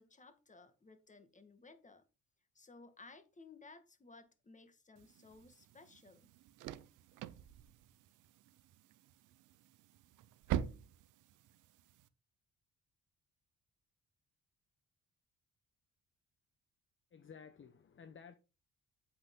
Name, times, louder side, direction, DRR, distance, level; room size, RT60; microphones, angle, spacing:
voice 1, 0.0-2.0 2.5-6.3, left 3 dB, 25° left, 1.8 m, -58 dB
sound 1, 5.0-12.1, right 11 dB, 85° right, 0.8 m, -45 dB
voice 2, 17.1-18.4, left 6 dB, 40° left, 1.0 m, -54 dB
8.6 x 8.1 x 3.8 m
cardioid pair, 90°, 30 cm